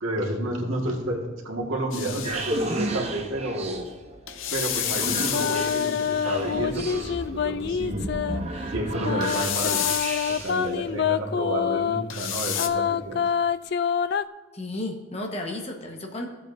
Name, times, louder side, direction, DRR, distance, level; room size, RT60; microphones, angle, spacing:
voice 1, 0.0-3.9 4.5-8.1 8.7-9.9 10.4-13.2, right 1 dB, 90° right, 0 dB, 1.9 m, -30 dB
sound 1, 1.6-10.7, right 2 dB, 30° right, 0.8 m, -33 dB
sound 2, 1.9-2.8 4.3-6.5 9.2-10.7 12.1-12.7, left 10 dB, 80° left, 0.7 m, -30 dB
sound 3, 5.3-8.4 9.0-12.1 12.6-14.2, left 7 dB, 55° left, 0.3 m, -26 dB
voice 2, 14.5-16.3, left 2 dB, 30° left, 1 dB, 1.3 m, -33 dB
15.0 x 7.7 x 2.7 m, 1.3 s
head